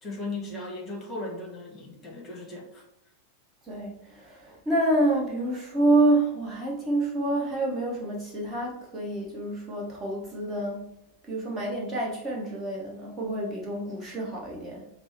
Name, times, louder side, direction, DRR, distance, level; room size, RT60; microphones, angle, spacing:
voice 1, 0.0-2.8, left 2 dB, 25° left, -1 dB, 1.3 m, -37 dB
voice 2, 3.6-10.9 11.2-14.9, right 1 dB, 15° right, -3 dB, 1.1 m, -27 dB
5.9 x 2.0 x 4.3 m, 0.81 s
figure-of-eight pair, 90°, 0 cm